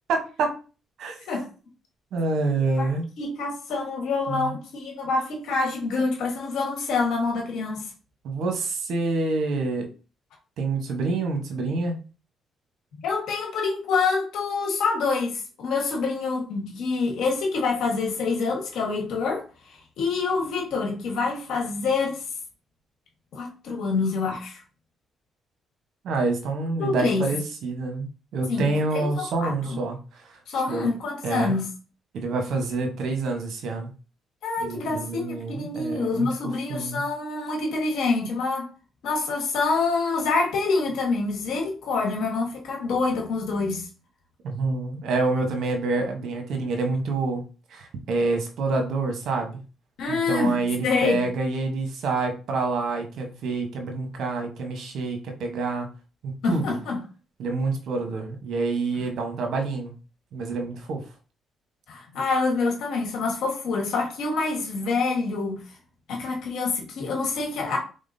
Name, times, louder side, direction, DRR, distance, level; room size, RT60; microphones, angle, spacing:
voice 1, 0.1-0.6 1.0-1.2 2.1-3.1 4.3-4.6 8.2-9.9 10.6-12.0 26.0-28.1 28.3-30.9 31.2-31.5 32.1-33.9 34.6-36.3 36.7-37.0 44.4-47.4 47.7-49.6 50.1-55.9 56.2-56.8 57.4-59.9 60.3-61.0, right 3 dB, 75° right, 1.0 m, -27 dB
voice 2, 3.2-7.8 13.0-22.2 23.3-24.6 26.8-27.3 28.5-28.7 28.9-29.8 30.5-31.7 34.4-38.7 39.0-43.9 50.0-50.6 50.8-51.2 56.4-57.0 61.9-65.6 66.1-67.8, left 4 dB, 80° left, 1.3 m, -26 dB
3.7 x 3.5 x 2.6 m
cardioid pair, 90°, 0 cm